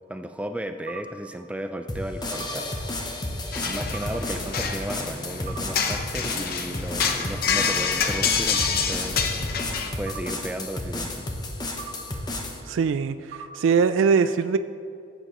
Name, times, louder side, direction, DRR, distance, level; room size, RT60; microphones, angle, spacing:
voice 1, 0.1-2.9 3.6-9.2 10.0-11.3, right 1 dB, 5° right, 7 dB, 0.3 m, -34 dB
sound 1, 0.9-1.0 2.4-2.5 3.9-4.1 5.5-5.6 7.0-7.1 8.5-8.7 10.1-10.2 11.8-11.9 13.3-13.5, right 7 dB, 55° right, 1.6 m, -37 dB
sound 2, 1.9-12.6, left 1 dB, 20° left, 0.8 m, -32 dB
sound 3, 3.5-9.9, left 6 dB, 50° left, 0.7 m, -27 dB
voice 2, 12.7-14.6, right 5 dB, 85° right, 11 dB, 0.3 m, -22 dB
14.0 x 8.7 x 3.0 m, 2.4 s
head